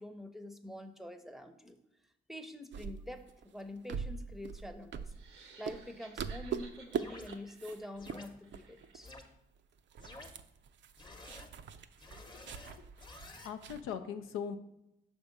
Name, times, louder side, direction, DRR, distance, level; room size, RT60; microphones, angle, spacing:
voice 1, 0.0-1.8 2.3-5.1 5.6-9.2, left 1 dB, ahead, 7 dB, 0.6 m, -46 dB
sound 1, 2.7-5.4 5.7-5.9 6.2-7.0 7.3-7.8 8.1-8.2 8.5-9.1 9.4-9.5 9.8-13.8, right 7 dB, 65° right, 0.4 m, -42 dB
sound 2, 5.1-9.3, right 5 dB, 85° right, 0.8 m, -57 dB
sound 3, 7.0-7.3 8.0-8.3 9.0-9.2 10.0-10.3 11.0-11.5 12.0-13.5, left 2 dB, 20° left, 0.8 m, -51 dB
voice 2, 12.1-12.8 13.4-14.6, left 7 dB, 85° left, 7 dB, 0.4 m, -41 dB
5.9 x 3.5 x 5.3 m, 0.86 s
supercardioid pair, 45°, 21 cm